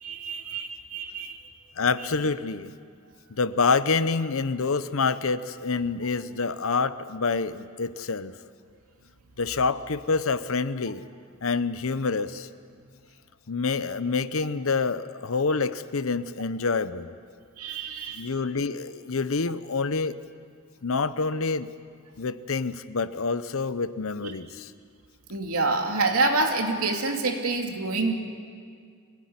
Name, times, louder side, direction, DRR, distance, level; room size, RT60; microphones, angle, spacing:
voice 1, 0.0-1.4 17.6-18.3 24.2-24.3 25.3-28.1, right 3 dB, 80° right, 3 dB, 2.6 m, -27 dB
voice 2, 1.8-2.7 3.3-8.3 9.4-11.0 11.4-12.5 13.5-17.1 18.1-20.2 20.8-21.7 22.2-24.7, left 4 dB, 65° left, 13 dB, 0.7 m, -27 dB
24.0 x 17.5 x 9.5 m, 2.2 s
head